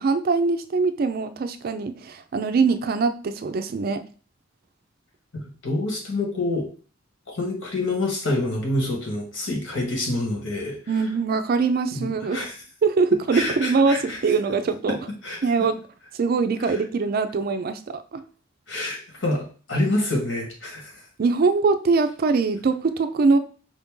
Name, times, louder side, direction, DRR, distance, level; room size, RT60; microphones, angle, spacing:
voice 1, 0.0-4.0 10.9-12.4 12.8-15.0 15.4-15.8 16.1-18.2 21.2-23.4, right 4 dB, 50° right, 10 dB, 0.4 m, -22 dB
voice 2, 5.3-6.6 7.3-10.8 11.9-12.5 13.3-14.2 15.2-15.4 16.7-16.8 18.7-20.9, left 2 dB, 80° left, 0 dB, 1.5 m, -27 dB
4.9 x 2.7 x 3.6 m, 0.40 s
head